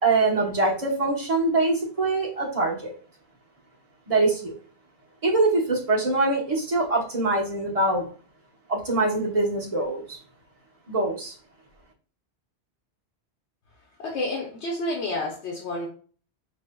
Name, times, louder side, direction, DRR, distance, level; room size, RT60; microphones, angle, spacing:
voice 1, 0.0-2.9 4.1-4.5 5.2-8.1 8.7-10.2 10.9-11.3, right 2 dB, 35° right, -2 dB, 1.1 m, -23 dB
voice 2, 14.0-15.9, left 2 dB, 85° left, -1 dB, 1.1 m, -29 dB
4.8 x 3.0 x 2.2 m, 0.41 s
omnidirectional pair, 1.1 m